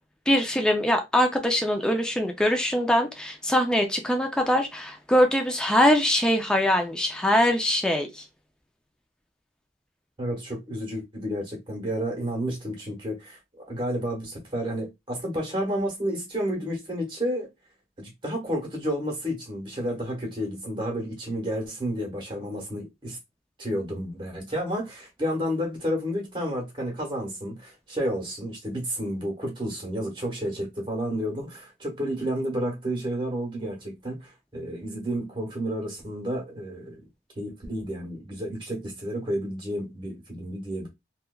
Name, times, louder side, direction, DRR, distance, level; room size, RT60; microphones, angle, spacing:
voice 1, 0.3-8.2, equal, 5° left, 0.3 m, -23 dB
voice 2, 10.2-13.4 13.7-17.5 18.0-23.2 23.6-37.0 37.4-40.9, equal, 30° right, 1.1 m, -31 dB
3.1 x 2.3 x 2.2 m
head